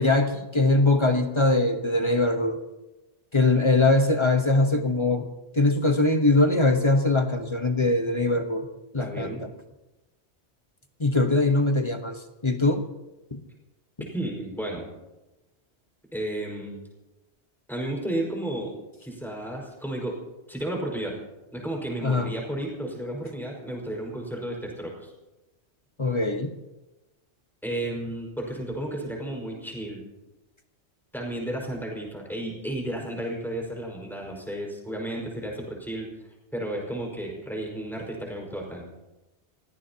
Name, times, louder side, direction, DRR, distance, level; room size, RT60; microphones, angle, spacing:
voice 1, 0.0-2.6 3.3-5.2 5.6-8.7 8.9-9.4 11.0-12.2 12.4-12.8 13.3-13.4 22.0-22.3 26.0-26.5, left 2 dB, 25° left, 6 dB, 1.1 m, -22 dB
voice 2, 9.0-9.4 14.1-14.9 16.1-16.8 17.7-18.7 19.0-20.2 20.5-21.2 21.5-25.1 27.6-30.0 31.1-36.1 36.5-38.9, right 1 dB, ahead, -2 dB, 5.0 m, -33 dB
28.5 x 17.0 x 2.9 m, 1.0 s
omnidirectional pair, 1.1 m